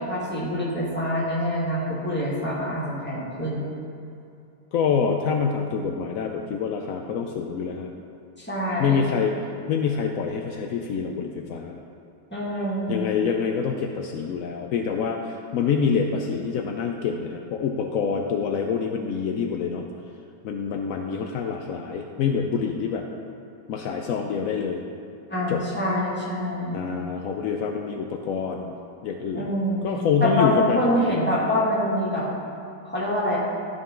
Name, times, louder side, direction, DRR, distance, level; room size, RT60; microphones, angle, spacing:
voice 1, 0.0-3.6 8.4-9.0 12.3-13.1 25.3-26.8 29.3-29.9 30.2-32.3 32.8-33.4, equal, 5° left, -7 dB, 1.7 m, -25 dB
voice 2, 4.7-7.9 8.8-9.4 9.7-11.8 12.9-19.9 20.4-23.0 23.7-24.8 25.5-25.6 26.7-28.7 29.0-29.5 29.8-31.2, left 6 dB, 80° left, 3 dB, 0.7 m, -26 dB
13.0 x 5.4 x 3.7 m, 2.5 s
omnidirectional pair, 2.0 m